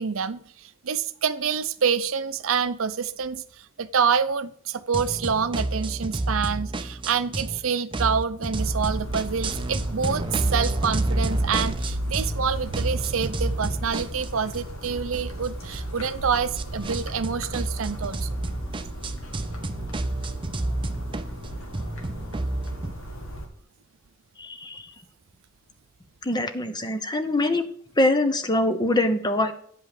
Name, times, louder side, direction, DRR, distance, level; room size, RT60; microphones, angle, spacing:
voice 1, 0.0-18.4, right 6 dB, 70° right, 12 dB, 0.6 m, -27 dB
sound 1, 4.9-7.6 7.9-12.4 12.7-22.9, right 2 dB, 25° right, 0.6 m, -30 dB
sound 2, 8.5-23.5, equal, 65° left, 1.8 m, -35 dB
voice 2, 24.4-24.8 26.2-27.7 28.0-29.5, left 1 dB, 20° left, 8 dB, 0.8 m, -23 dB
9.2 x 5.5 x 4.9 m, 0.62 s
head